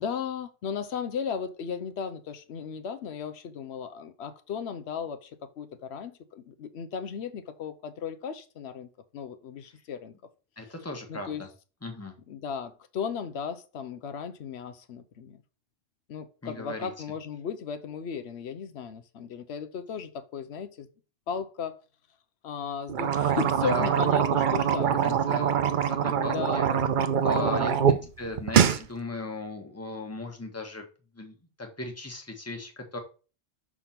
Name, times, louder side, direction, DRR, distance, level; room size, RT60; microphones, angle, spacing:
voice 1, 0.0-5.3 5.6-10.1 11.1-11.4 12.3-15.4 16.1-20.9 21.3-21.8 22.4-25.0 26.0-26.9 27.3-27.9, left 6 dB, 85° left, 1.0 m, -36 dB
voice 2, 10.6-11.5 11.8-12.2 16.4-16.9 23.3-24.0 24.8-26.7 27.2-30.8 31.1-33.0, left 2 dB, 15° left, 1.2 m, -37 dB
sound 1, 22.9-28.0 28.3-28.8, right 8 dB, 60° right, 0.7 m, -24 dB
6.1 x 3.5 x 5.8 m
omnidirectional pair, 1.1 m